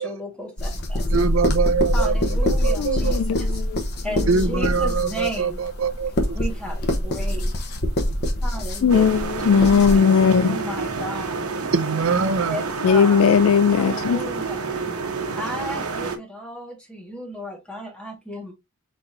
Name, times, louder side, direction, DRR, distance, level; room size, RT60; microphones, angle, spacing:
voice 1, 0.0-1.1 1.9-3.5 4.0-5.6 6.3-7.5 8.4-9.2 9.9-10.1 10.4-11.4 12.4-13.3 13.7-14.6 15.0-18.5, equal, 5° left, 1.6 m, -34 dB
sound 1, 0.6-10.0, left 1 dB, 50° left, 0.9 m, -24 dB
voice 2, 1.1-3.2 4.3-6.4 11.7-12.6, right 5 dB, 65° right, 0.5 m, -24 dB
voice 3, 2.8-3.8 8.8-10.6 12.8-14.2, left 6 dB, 70° left, 0.3 m, -18 dB
sound 2, 8.9-16.2, right 4 dB, 90° right, 1.0 m, -29 dB
4.4 x 4.1 x 2.6 m
head